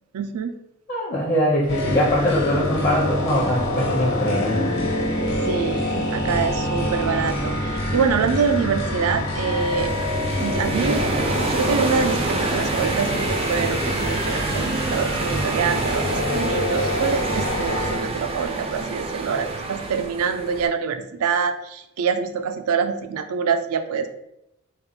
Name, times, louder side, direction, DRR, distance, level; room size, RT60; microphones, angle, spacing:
voice 1, 0.1-0.5 5.5-9.9 10.4-11.1 11.4-24.1, right 6 dB, 90° right, 8 dB, 0.4 m, -25 dB
voice 2, 0.9-4.7, left 1 dB, 35° left, -5 dB, 0.7 m, -22 dB
sound 1, 1.7-18.0, left 1 dB, 50° left, 1.1 m, -26 dB
sound 2, 9.3-20.7, right 3 dB, 25° right, 0.3 m, -27 dB
4.1 x 2.1 x 4.0 m, 0.82 s
head